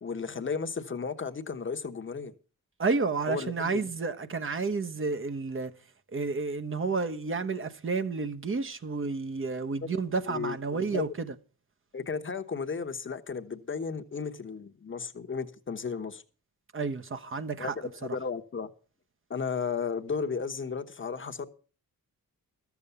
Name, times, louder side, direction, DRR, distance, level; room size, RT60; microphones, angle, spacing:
voice 1, 0.0-2.3 3.3-3.9 10.3-11.1 11.9-16.2 17.6-18.7 19.3-21.5, left 5 dB, 35° left, 1.1 m, -34 dB
voice 2, 2.8-5.7 6.1-11.3 16.7-17.8 18.0-18.2, right 4 dB, 35° right, 1.0 m, -31 dB
13.0 x 7.1 x 6.8 m
wide cardioid pair, 105°, 36 cm